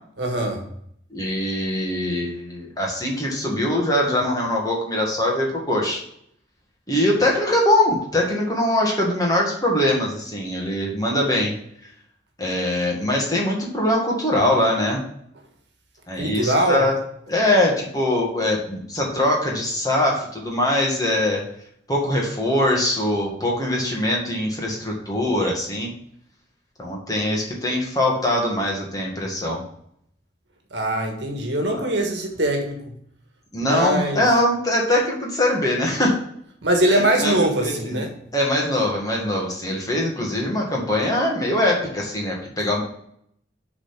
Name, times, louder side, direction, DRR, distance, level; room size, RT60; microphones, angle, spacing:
voice 1, 0.2-0.6 16.1-16.9 30.7-32.8 33.6-34.2 36.6-38.1, right 1 dB, 70° right, 3 dB, 1.5 m, -22 dB
voice 2, 1.1-6.0 6.9-11.6 12.4-15.0 16.1-17.0 17.3-21.4 21.9-25.9 26.8-29.6 31.7-31.9 33.5-36.2 36.9-38.0 38.3-42.8, left 1 dB, 20° left, -2 dB, 1.8 m, -22 dB
7.1 x 4.0 x 5.8 m, 0.69 s
head